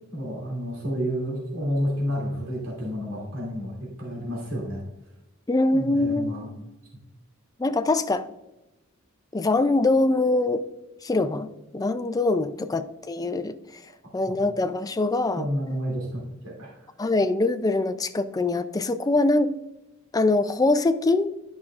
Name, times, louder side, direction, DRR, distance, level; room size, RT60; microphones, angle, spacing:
voice 1, 0.1-4.8 5.7-6.5 15.4-16.9, equal, 85° right, -4 dB, 2.7 m, -30 dB
voice 2, 5.5-6.4 7.6-8.3 9.3-10.6 11.0-11.5 11.7-13.5 14.1-15.5 17.0-19.5 20.1-21.3, left 2 dB, 20° left, 10 dB, 0.4 m, -23 dB
11.5 x 6.1 x 2.4 m, 0.96 s
head